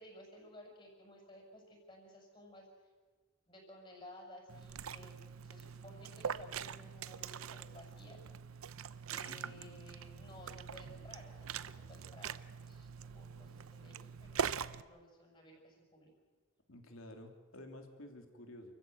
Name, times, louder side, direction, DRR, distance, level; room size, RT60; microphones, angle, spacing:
voice 1, 0.0-2.9 3.5-5.2 5.4-8.2 9.1-16.1, left 1 dB, 25° left, 0 dB, 6.4 m, -56 dB
Liquid, 4.5-14.8, right 7 dB, 80° right, 0.6 m, -43 dB
voice 2, 9.3-9.8 16.7-18.7, left 1 dB, 75° left, 4 dB, 2.9 m, -52 dB
28.5 x 15.0 x 7.9 m, 1.4 s
head